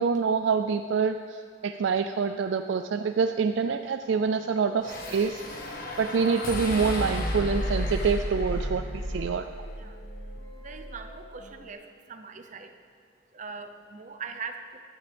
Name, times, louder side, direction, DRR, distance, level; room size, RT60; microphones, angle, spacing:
voice 1, 0.0-5.4 6.0-9.5, right 5 dB, 60° right, 8 dB, 0.3 m, -26 dB
sound 1, 4.0-11.7, equal, 30° left, 1.6 m, -48 dB
sound 2, 4.8-11.2, equal, 45° left, 1.4 m, -33 dB
voice 2, 10.6-11.8 12.1-12.7 13.3-14.8, right 5 dB, 40° right, 7 dB, 0.7 m, -41 dB
14.5 x 11.0 x 3.5 m, 2.3 s
head